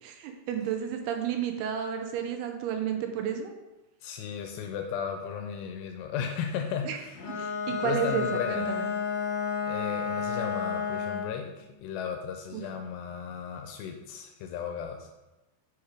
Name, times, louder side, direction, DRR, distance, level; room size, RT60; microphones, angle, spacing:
voice 1, 0.0-3.5 6.8-7.0 7.3-8.9 12.5-12.6, right 8 dB, 80° right, 4 dB, 2.5 m, -32 dB
voice 2, 4.0-7.2 7.7-8.7 9.7-15.1, left 7 dB, 85° left, 3 dB, 2.7 m, -35 dB
Bowed string instrument, 7.1-11.4, left 6 dB, 60° left, 2.7 m, -31 dB
7.2 x 4.8 x 4.9 m, 1.1 s
omnidirectional pair, 4.9 m